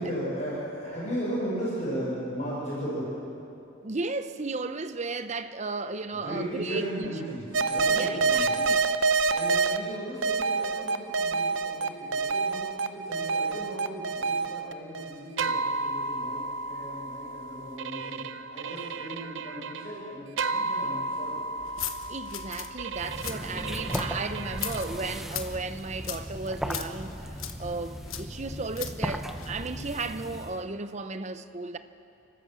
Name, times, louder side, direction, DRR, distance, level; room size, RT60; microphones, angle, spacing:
voice 1, 0.0-3.2 6.2-8.6 9.3-18.2 18.5-21.4, right 1 dB, 35° left, 5.6 m, -36 dB
voice 2, 3.8-7.1 7.9-8.8 22.1-31.8, right 3 dB, 35° right, 0.7 m, -34 dB
sound 1, 7.5-9.8 10.2-25.2, right 4 dB, 65° right, 0.7 m, -29 dB
sound 2, 21.6-29.6, left 9 dB, 90° left, 1.3 m, -40 dB
sound 3, 22.9-30.6, equal, ahead, 0.8 m, -37 dB
29.5 x 13.0 x 7.6 m
head